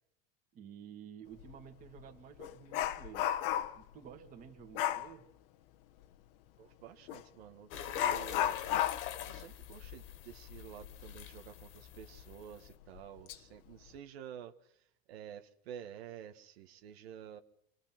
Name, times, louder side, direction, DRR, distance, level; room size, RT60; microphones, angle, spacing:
voice 1, 0.5-3.3 3.7-5.3, right 8 dB, 25° right, 2.3 m, -52 dB
Dog, 1.4-1.5 2.0-3.9 4.7-5.1 7.1-7.2 7.9-11.2 11.6-11.7 12.2-12.3 12.9-13.4 13.7-14.0, left 11 dB, 70° left, 1.3 m, -34 dB
voice 2, 6.6-8.6 9.2-17.4, right 9 dB, 90° right, 1.9 m, -50 dB
sound 1, 7.7-12.7, left 10 dB, 40° left, 1.9 m, -45 dB
27.0 x 21.5 x 6.1 m
supercardioid pair, 165°, 30 cm